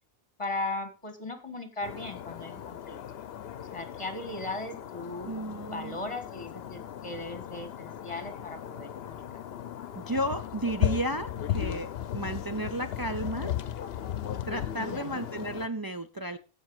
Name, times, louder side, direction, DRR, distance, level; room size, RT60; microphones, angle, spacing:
voice 1, 0.4-3.0 3.7-5.3 5.7-9.2 14.8-15.3, left 2 dB, 30° left, 1.8 m, -37 dB
sound 1, 1.8-15.7, left 10 dB, 70° left, 0.9 m, -36 dB
voice 2, 5.2-6.0 9.9-13.6 14.4-16.4, right 1 dB, 30° right, 0.4 m, -33 dB
15.5 x 5.5 x 4.8 m
omnidirectional pair, 1.1 m